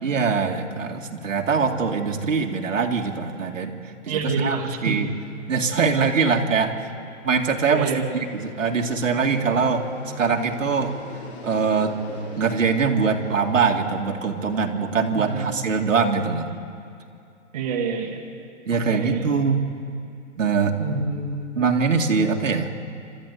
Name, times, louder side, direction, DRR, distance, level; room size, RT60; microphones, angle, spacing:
voice 1, 0.0-4.6 4.8-5.1 5.5-6.7 7.2-8.0 8.3-9.8 10.2-11.0 11.4-11.9 12.4-16.5 18.7-19.6 20.4-21.0 21.5-22.7, right 5 dB, 75° right, 2 dB, 2.3 m, -23 dB
voice 2, 4.1-5.0 7.7-8.1 15.2-15.6 17.5-18.2 18.7-19.3 20.8-21.4, right 5 dB, 30° right, 1 dB, 1.8 m, -27 dB
Fixed-wing aircraft airplane, 5.1-15.3, left 3 dB, 35° left, 4.1 m, -42 dB
28.0 x 13.5 x 8.3 m, 2.6 s
hypercardioid pair, 170°, 39 cm